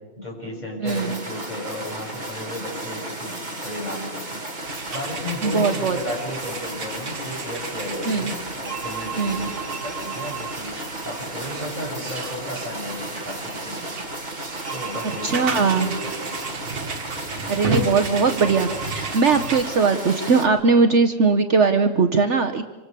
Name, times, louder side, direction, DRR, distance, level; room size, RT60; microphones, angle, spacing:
voice 1, 0.2-4.4 4.9-10.8 11.0-14.0 14.7-16.4 17.6-18.0, left 1 dB, 30° left, -2 dB, 7.4 m, -34 dB
voice 2, 0.8-1.2 5.4-6.0 8.0-8.3 9.2-9.4 15.0-16.0 17.5-22.6, right 4 dB, 55° right, 7 dB, 1.2 m, -20 dB
sound 1, 0.9-20.5, right 1 dB, 30° right, 2.7 m, -34 dB
sound 2, 4.6-19.6, right 5 dB, 85° right, 2.1 m, -33 dB
27.0 x 25.5 x 6.8 m, 1.2 s
omnidirectional pair, 1.5 m